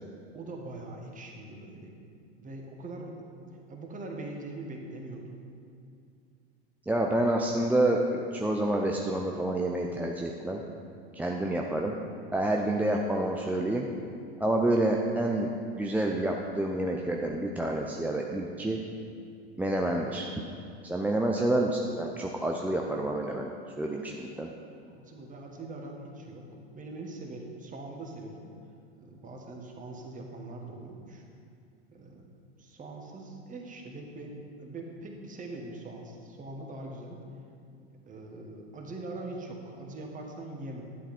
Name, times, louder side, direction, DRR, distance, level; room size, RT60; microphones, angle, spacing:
voice 1, 0.3-2.0 2.4-3.2 3.7-5.3 24.9-26.5 26.7-28.5 28.9-31.2 31.9-32.3 32.6-37.2 38.1-40.9, right 2 dB, 25° right, 1 dB, 1.7 m, -42 dB
voice 2, 6.9-10.6 11.1-11.9 12.3-13.9 14.4-15.5 15.8-18.8 19.6-20.3 20.8-23.5 23.8-24.5, right 1 dB, 5° right, 0 dB, 0.5 m, -28 dB
11.5 x 8.1 x 4.4 m, 2.4 s
hypercardioid pair, 95°, 33 cm